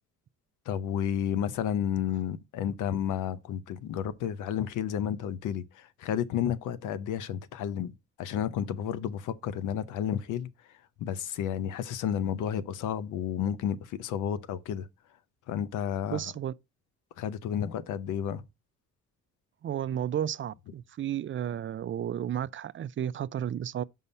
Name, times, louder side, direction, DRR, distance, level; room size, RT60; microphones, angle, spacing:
voice 1, 0.7-7.9 8.2-10.5 11.0-14.9 15.5-16.2 17.2-18.4, left 9 dB, 85° left, 0.8 m, -31 dB
voice 2, 16.1-16.5 19.6-23.8, right 10 dB, 40° right, 0.4 m, -32 dB
5.6 x 5.5 x 5.2 m
cardioid pair, 90°, 30 cm